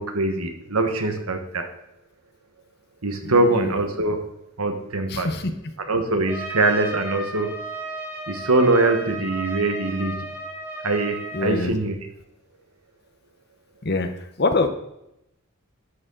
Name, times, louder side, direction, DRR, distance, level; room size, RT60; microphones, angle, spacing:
voice 1, 0.0-1.7 3.0-4.2 4.6-5.3 5.9-7.5 8.3-10.3 10.8-11.9, right 2 dB, 90° right, 6 dB, 1.3 m, -22 dB
voice 2, 3.2-3.6 5.1-5.5 11.3-11.8 13.8-14.7, left 3 dB, 50° left, 8 dB, 0.9 m, -25 dB
Trumpet, 6.3-11.6, right 1 dB, 10° right, 1.4 m, -34 dB
11.0 x 6.7 x 3.8 m, 0.83 s
head